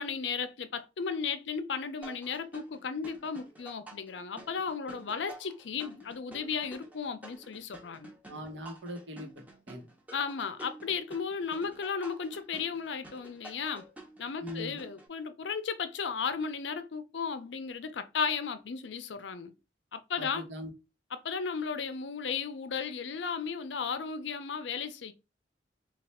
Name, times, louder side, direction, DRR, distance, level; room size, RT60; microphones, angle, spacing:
voice 1, 0.0-8.1 10.1-13.9 14.2-19.5 19.9-20.4 21.1-25.1, left 6 dB, 75° left, 0.5 m, -35 dB
sound 1, 2.0-15.1, right 1 dB, 10° right, 0.7 m, -50 dB
voice 2, 8.3-9.3 9.7-9.9 14.4-14.8 20.2-20.7, equal, 80° right, 1.0 m, -40 dB
3.3 x 2.3 x 4.1 m
head